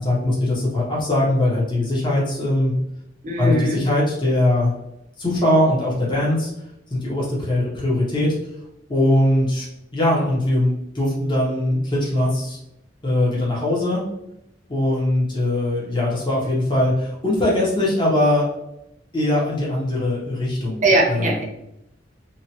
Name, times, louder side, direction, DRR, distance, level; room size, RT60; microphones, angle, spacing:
voice 1, 0.0-2.8 3.4-4.7 5.2-6.5 6.9-8.4 8.9-9.7 9.9-12.6 13.0-14.0 14.7-18.5 19.1-21.4, left 1 dB, 25° left, -5 dB, 0.8 m, -21 dB
voice 2, 3.2-3.8 20.8-21.4, right 2 dB, 45° right, 0 dB, 0.6 m, -20 dB
2.8 x 2.2 x 2.8 m, 0.82 s
head